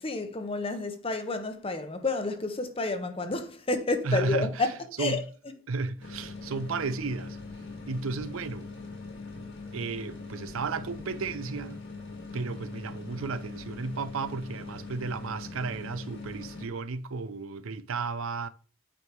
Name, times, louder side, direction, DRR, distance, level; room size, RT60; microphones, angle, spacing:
voice 1, 0.0-5.2, left 3 dB, 25° left, 0.8 m, -30 dB
voice 2, 4.0-4.7 5.0-5.2 5.7-7.4 7.9-8.7 9.7-11.8 12.3-18.5, right 4 dB, 70° right, 0.5 m, -33 dB
sound 1, 6.0-16.7, left 3 dB, 60° left, 1.7 m, -42 dB
8.6 x 5.4 x 3.1 m
head